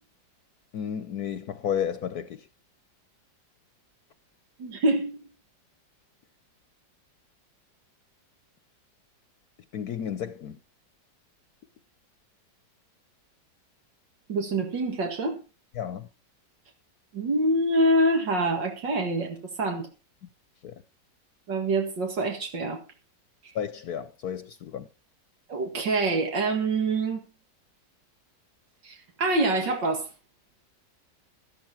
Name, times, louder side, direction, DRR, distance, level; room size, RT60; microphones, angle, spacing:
voice 1, 0.7-2.4 9.7-10.6 15.8-16.1 20.6-20.7 23.5-24.9, left 8 dB, 65° left, 1.2 m, -32 dB
voice 2, 4.6-5.1 14.3-15.4 17.1-19.9 21.5-22.8 25.5-27.3 28.8-30.1, right 2 dB, 75° right, 2.5 m, -25 dB
12.5 x 12.0 x 4.5 m
omnidirectional pair, 1.9 m